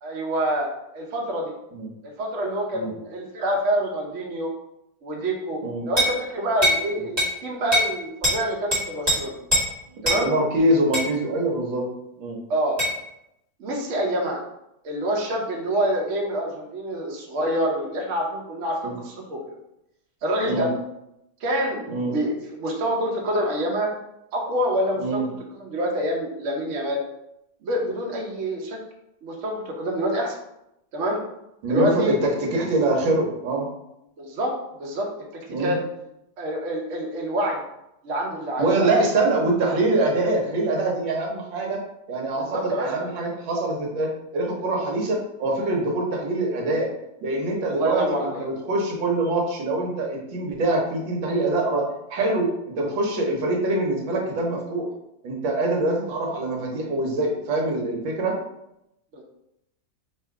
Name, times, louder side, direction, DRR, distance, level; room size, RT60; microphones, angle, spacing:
voice 1, 0.0-0.7 0.9-1.5 2.0-4.5 5.0-5.6 5.8-9.3 10.0-10.3 12.5-12.8 13.6-14.4 14.8-19.6 20.2-20.7 21.4-23.9 24.3-25.2 25.5-27.0 27.6-28.8 29.2-30.4 30.9-31.2 31.7-32.4 34.2-34.5 34.8-35.1 35.6-35.8 36.4-37.6 38.0-38.9 42.4-43.1 47.7-48.5 59.1-59.2, right 1 dB, 55° right, 0 dB, 0.8 m, -26 dB
sound 1, 6.0-6.2 6.6-6.8 7.2-7.3 7.7-7.9 8.2-8.4 8.7-9.2 9.5-9.7 10.0-10.2 10.9-11.1 12.8-12.9, equal, 25° right, 1.4 m, -21 dB
voice 2, 10.1-11.9 12.2-12.4 18.8-19.0 20.4-20.7 21.9-22.1 25.0-25.2 31.6-33.7 35.5-35.8 38.6-41.8 42.1-46.9 47.2-54.9 55.2-58.4, right 2 dB, 75° right, 0 dB, 1.6 m, -24 dB
3.4 x 2.5 x 4.5 m, 0.83 s
omnidirectional pair, 2.1 m